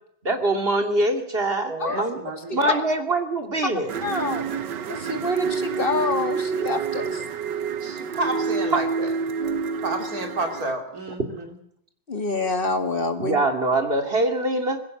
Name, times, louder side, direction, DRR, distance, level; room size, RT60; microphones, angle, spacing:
voice 1, 0.2-2.2 2.5-3.9 11.2-11.3 13.2-14.8, right 2 dB, 35° right, 5 dB, 2.7 m, -24 dB
voice 2, 1.7-2.8 7.8-9.1 9.8-11.6, right 2 dB, 55° right, 4 dB, 3.6 m, -30 dB
sound 1, 3.9-10.7, right 5 dB, 85° right, 1.8 m, -28 dB
voice 3, 4.0-4.4 4.9-7.2 12.1-13.4, left 3 dB, 30° left, 7 dB, 2.3 m, -26 dB
20.5 x 16.5 x 7.8 m, 0.68 s
omnidirectional pair, 1.9 m